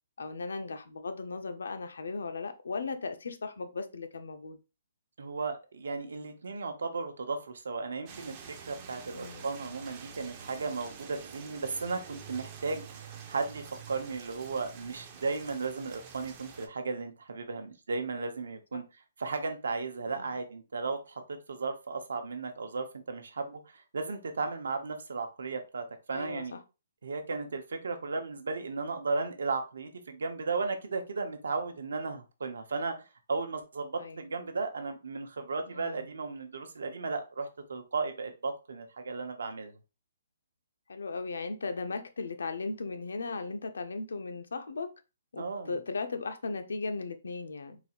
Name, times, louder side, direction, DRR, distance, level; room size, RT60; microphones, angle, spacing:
voice 1, 0.2-4.6 9.1-9.5 18.7-18.8 20.0-20.4 26.1-26.6 34.0-34.2 35.7-36.1 40.9-44.9 45.3-47.8, left 4 dB, 85° left, 0.6 m, -37 dB
voice 2, 5.2-8.3 8.6-18.8 19.2-26.6 27.0-32.9 33.3-39.7 45.4-45.7, right 4 dB, 75° right, 0.8 m, -35 dB
sound 1, 8.1-16.7, right 6 dB, 20° right, 0.4 m, -47 dB
4.0 x 2.4 x 2.9 m
hypercardioid pair, 180°, 0 cm